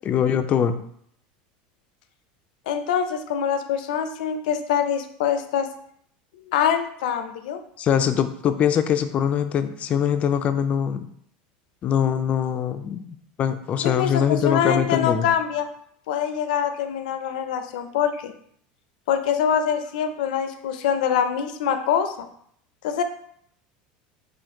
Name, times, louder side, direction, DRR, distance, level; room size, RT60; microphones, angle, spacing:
voice 1, 0.0-0.8 7.8-11.1 11.8-13.0 13.4-15.3, left 8 dB, 30° left, 10 dB, 0.3 m, -22 dB
voice 2, 2.7-5.7 6.5-7.6 13.8-15.7 16.1-18.3 19.1-22.3 22.8-23.0, left 8 dB, 90° left, 8 dB, 0.5 m, -24 dB
4.3 x 2.5 x 3.6 m, 0.66 s
supercardioid pair, 145°, 4 cm